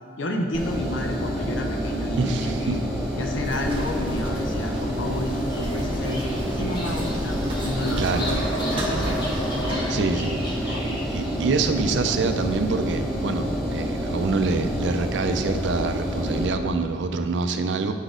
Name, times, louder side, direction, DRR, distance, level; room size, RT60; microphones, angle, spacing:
voice 1, 0.2-2.8 3.2-9.2 9.6-10.1 10.3-10.8, left 1 dB, 75° left, 3 dB, 0.6 m, -31 dB
Engine, 0.5-16.4, equal, ahead, 1.1 m, -28 dB
voice 2, 2.2-2.9 8.0-8.3 9.6-10.4 10.6-17.9, right 4 dB, 65° right, 8 dB, 0.4 m, -26 dB
sound 1, 3.4-9.8, right 1 dB, 25° right, 0.9 m, -32 dB
Bird vocalization bird call bird song, 5.2-11.9, right 1 dB, 25° left, 1.0 m, -35 dB
7.2 x 4.0 x 5.1 m, 2.2 s
head